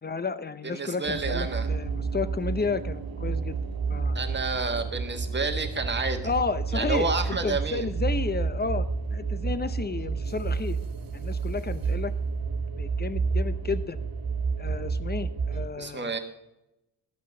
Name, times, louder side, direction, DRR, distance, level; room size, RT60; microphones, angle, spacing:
voice 1, 0.0-3.6 3.9-4.2 6.2-10.8 11.1-12.1 12.7-14.0 14.6-16.1, left 4 dB, 25° left, 13 dB, 0.6 m, -32 dB
voice 2, 0.6-1.7 4.1-6.3 6.7-7.9 15.8-16.2, right 3 dB, 25° right, 5 dB, 1.4 m, -30 dB
sound 1, 1.0-15.7, right 4 dB, 55° right, 1.2 m, -30 dB
11.5 x 5.9 x 5.9 m, 0.91 s
cardioid pair, 95°, 41 cm